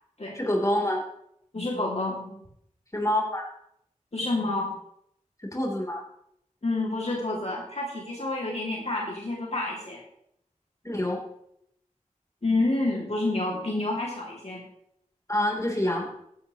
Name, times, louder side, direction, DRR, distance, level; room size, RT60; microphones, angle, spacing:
voice 1, 0.3-1.0 2.9-3.5 5.4-6.0 10.8-11.2 15.3-16.1, left 1 dB, 25° left, 0 dB, 3.1 m, -26 dB
voice 2, 1.5-2.4 4.1-4.7 6.6-10.0 12.4-14.6, left 2 dB, 55° left, -2 dB, 2.3 m, -29 dB
15.0 x 11.0 x 3.0 m, 0.75 s
wide cardioid pair, 50°, 13 cm